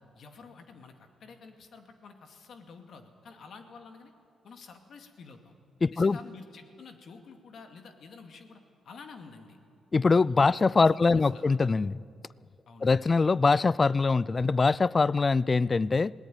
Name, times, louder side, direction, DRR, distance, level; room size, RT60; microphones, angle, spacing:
voice 1, 0.2-4.1 4.4-5.5 5.9-8.6 8.8-9.6 10.5-11.5 12.7-12.9, left 4 dB, 65° left, 2.3 m, -49 dB
voice 2, 5.8-6.2 9.9-12.0 12.8-16.1, left 4 dB, 35° left, 0.4 m, -23 dB
20.5 x 18.0 x 9.2 m
cardioid pair, 70°, 0 cm